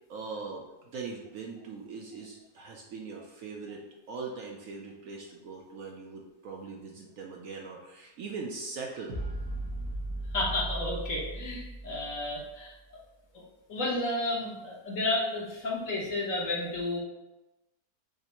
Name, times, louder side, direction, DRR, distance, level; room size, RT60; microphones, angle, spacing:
voice 1, 0.1-3.8 4.1-9.2, right 4 dB, 65° right, 0 dB, 0.9 m, -41 dB
sound 1, 9.1-12.5, right 1 dB, 90° right, 1.7 m, -37 dB
voice 2, 10.3-13.0 13.7-17.0, left 2 dB, 55° left, -3 dB, 1.3 m, -32 dB
6.4 x 2.6 x 3.0 m, 1.0 s
omnidirectional pair, 1.7 m